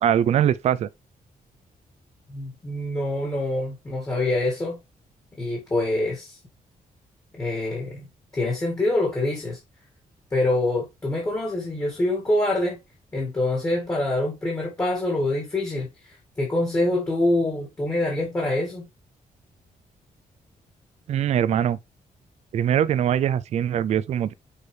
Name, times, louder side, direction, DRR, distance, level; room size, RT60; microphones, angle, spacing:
voice 1, 0.0-0.9 21.1-21.8 22.5-24.3, right 10 dB, 50° right, 0.4 m, -22 dB
voice 2, 2.3-4.8 5.4-6.4 7.3-8.0 8.3-9.6 10.3-12.8 13.1-15.9 16.4-18.8, left 2 dB, 20° left, 2.0 m, -25 dB
6.4 x 4.9 x 3.2 m
wide cardioid pair, 175°, 14 cm